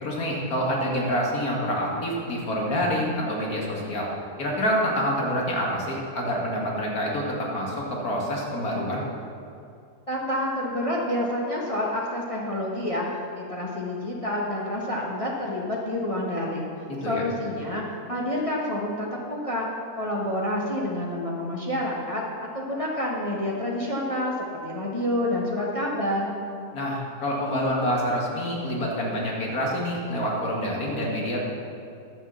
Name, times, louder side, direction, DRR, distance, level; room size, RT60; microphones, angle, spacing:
voice 1, 0.0-4.1 4.4-9.0 17.0-17.2 26.7-31.4, equal, 75° left, -2 dB, 2.5 m, -27 dB
voice 2, 10.1-16.7 17.0-19.7 20.0-22.2 22.5-26.4, left 1 dB, 25° left, -4 dB, 1.4 m, -28 dB
10.5 x 7.9 x 7.1 m, 2.6 s
omnidirectional pair, 1.6 m